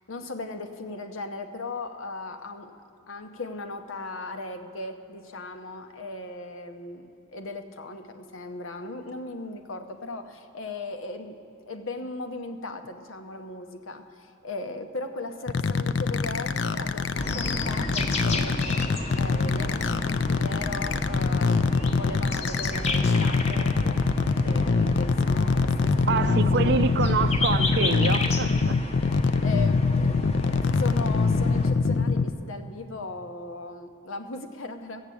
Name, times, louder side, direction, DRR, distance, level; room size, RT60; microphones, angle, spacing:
voice 1, 0.1-2.8 3.1-11.4 11.7-18.8 19.1-24.0 24.4-27.0 29.4-35.0, left 2 dB, 85° left, 7 dB, 0.9 m, -37 dB
sound 1, 15.5-32.3, left 4 dB, 60° left, 0.4 m, -24 dB
sound 2, 17.2-31.7, left 2 dB, 30° left, 0.7 m, -32 dB
voice 2, 26.1-28.7, right 5 dB, 55° right, 13 dB, 0.4 m, -26 dB
14.5 x 7.4 x 8.4 m, 2.6 s
head